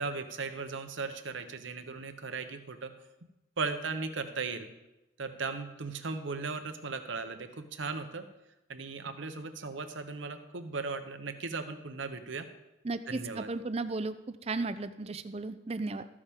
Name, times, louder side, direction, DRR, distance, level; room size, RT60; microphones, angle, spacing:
voice 1, 0.0-2.9 3.6-4.7 5.2-8.2 8.7-12.5 13.1-13.5, right 4 dB, 75° right, 8 dB, 1.0 m, -37 dB
voice 2, 12.8-14.1 14.4-16.1, right 3 dB, 30° right, 12 dB, 0.5 m, -34 dB
14.0 x 9.8 x 3.6 m, 0.96 s
head